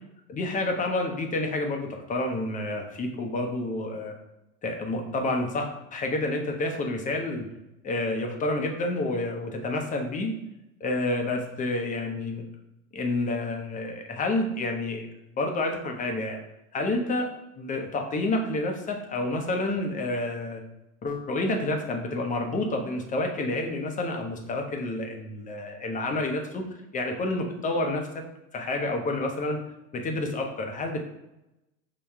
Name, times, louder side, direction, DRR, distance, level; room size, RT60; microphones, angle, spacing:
voice 1, 0.3-4.1 4.6-7.5 7.8-10.3 10.8-12.4 12.9-15.0 15.4-16.4 16.7-17.3 17.6-20.6 21.0-26.6 26.9-28.0 28.5-29.6 29.9-31.0, left 2 dB, 20° left, 3 dB, 0.6 m, -29 dB
5.6 x 2.2 x 3.3 m, 0.93 s
hypercardioid pair, 105°, 41 cm